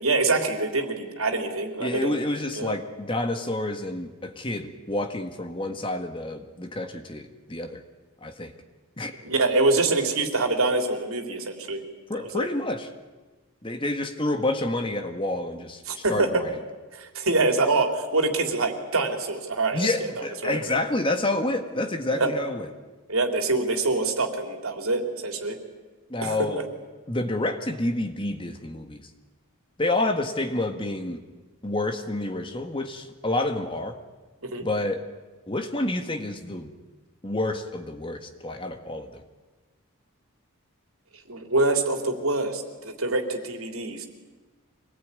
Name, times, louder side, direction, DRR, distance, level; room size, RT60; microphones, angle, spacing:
voice 1, 0.0-2.2 2.6-2.8 9.2-11.8 12.1-12.5 15.9-16.4 16.9-20.1 20.4-20.8 22.1-22.3 23.1-25.6 26.2-26.6 34.4-34.7 41.3-44.1, right 2 dB, 80° right, 5 dB, 3.4 m, -25 dB
voice 2, 1.8-7.8 8.2-8.5 9.0-9.2 12.1-12.9 13.6-16.5 19.7-22.7 26.1-26.6 27.1-29.0 29.8-31.2 31.6-34.0 34.6-35.0 35.5-36.7 37.2-39.2, left 2 dB, 25° left, 6 dB, 1.7 m, -29 dB
25.0 x 19.5 x 9.8 m, 1.3 s
head